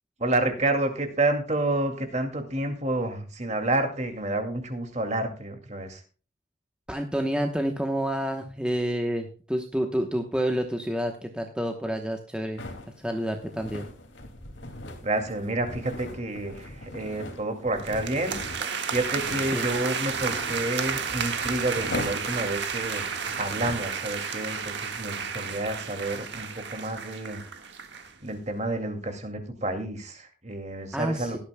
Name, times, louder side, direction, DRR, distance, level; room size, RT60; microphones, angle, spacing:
voice 1, 0.2-6.0 15.0-27.4 28.2-31.4, right 2 dB, 35° right, 6 dB, 2.3 m, -29 dB
voice 2, 6.9-12.6 13.0-13.9 19.5-19.7 30.9-31.4, equal, 5° right, 3 dB, 0.9 m, -29 dB
sound 1, 12.6-23.9, left 1 dB, 70° left, 2.4 m, -40 dB
sound 2, 17.8-28.1, right 6 dB, 60° right, 1.6 m, -32 dB
17.5 x 12.0 x 2.2 m, 0.38 s
head